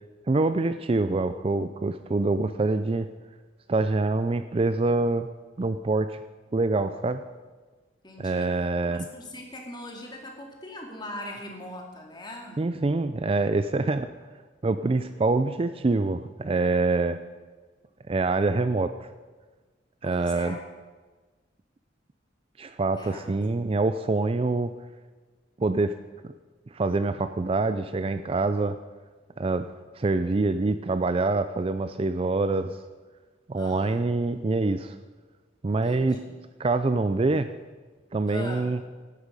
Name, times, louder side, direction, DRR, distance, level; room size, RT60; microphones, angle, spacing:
voice 1, 0.3-3.1 3.7-5.3 5.6-6.2 6.5-7.2 8.2-9.1 12.6-14.1 14.6-17.2 18.1-19.1 20.0-20.6 22.6-24.7 25.6-25.9 26.7-28.7 29.4-29.7 29.9-32.8 33.5-35.0 35.6-36.2 36.6-37.5 38.1-38.8, right 3 dB, 30° right, 11 dB, 0.4 m, -25 dB
voice 2, 8.0-12.6 20.0-20.6 22.9-23.3 33.5-34.0 35.8-36.4 38.3-38.7, left 1 dB, 20° left, 1 dB, 2.3 m, -41 dB
16.5 x 9.8 x 5.3 m, 1.3 s
head